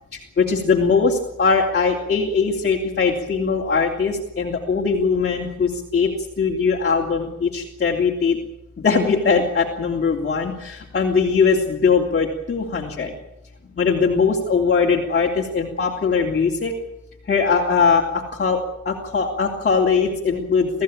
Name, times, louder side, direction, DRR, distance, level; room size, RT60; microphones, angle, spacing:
voice 1, 0.1-6.1 6.4-8.4 8.8-13.1 13.8-16.7 17.3-18.6 18.8-20.8, left 5 dB, 35° left, -1 dB, 3.3 m, -20 dB
25.0 x 15.5 x 9.0 m, 0.89 s
cardioid pair, 135°, 29 cm